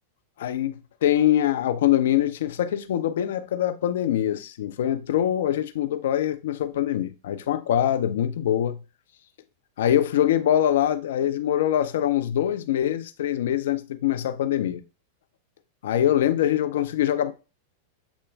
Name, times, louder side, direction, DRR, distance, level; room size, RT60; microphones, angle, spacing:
voice 1, 0.4-8.8 9.8-14.8 15.8-17.3, left 11 dB, 70° left, 0.5 m, -23 dB
8.0 x 2.9 x 2.3 m
hypercardioid pair, 95°, 0 cm